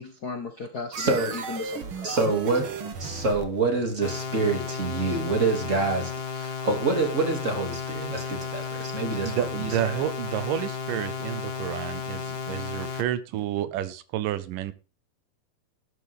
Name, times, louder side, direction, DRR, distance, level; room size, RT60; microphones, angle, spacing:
voice 1, 0.0-2.2, left 4 dB, 85° left, 0.8 m, -36 dB
sound 1, 0.9-4.5, right 5 dB, 50° right, 1.7 m, -36 dB
voice 2, 1.0-1.3 2.0-2.7 3.0-9.9, right 3 dB, 25° right, 2.7 m, -27 dB
sound 2, 4.0-13.0, left 6 dB, 40° left, 1.7 m, -34 dB
voice 3, 9.2-14.7, right 11 dB, 80° right, 2.4 m, -30 dB
12.5 x 12.5 x 3.7 m
omnidirectional pair, 3.9 m